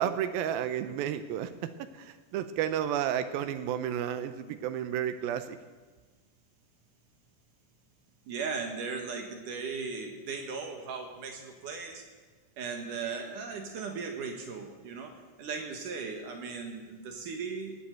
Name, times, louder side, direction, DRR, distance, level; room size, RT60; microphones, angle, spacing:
voice 1, 0.0-5.6, right 10 dB, 80° right, 11 dB, 2.2 m, -32 dB
voice 2, 8.3-12.0 12.6-17.8, right 5 dB, 60° right, 4 dB, 2.5 m, -37 dB
19.5 x 7.2 x 9.1 m, 1.4 s
omnidirectional pair, 4.8 m